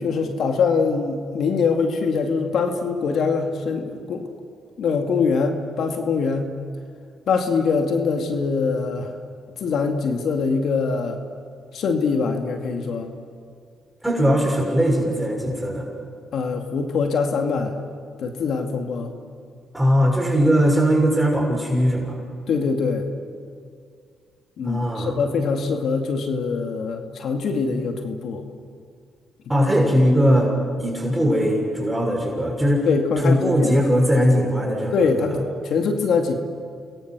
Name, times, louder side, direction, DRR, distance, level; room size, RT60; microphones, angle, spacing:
voice 1, 0.0-4.2 4.8-6.5 7.3-9.1 9.6-11.2 11.7-13.1 16.3-17.8 18.2-19.1 22.5-23.1 24.6-28.4 32.8-33.7 34.9-35.4 35.7-36.3, left 5 dB, 70° left, 4 dB, 2.4 m, -23 dB
voice 2, 14.0-15.9 19.7-22.2 24.6-25.2 29.5-32.9 33.2-35.4, equal, 5° right, 0 dB, 6.4 m, -20 dB
29.0 x 22.0 x 6.3 m, 2.2 s
supercardioid pair, 70°, 0 cm